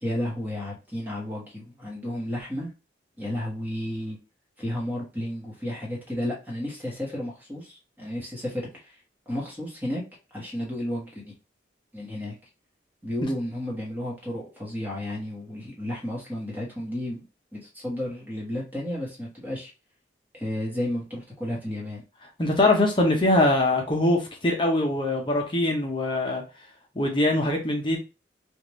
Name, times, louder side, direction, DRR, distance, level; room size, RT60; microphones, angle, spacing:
voice 1, 0.0-2.7 3.2-4.2 4.6-9.0 9.3-10.0 10.3-11.3 11.9-12.3 13.0-17.2 17.5-19.7 20.3-22.0, left 1 dB, 10° right, -4 dB, 1.2 m, -32 dB
voice 2, 22.4-26.4 27.0-28.0, left 1 dB, 25° left, 1 dB, 0.7 m, -22 dB
3.5 x 2.5 x 3.0 m, 0.29 s
head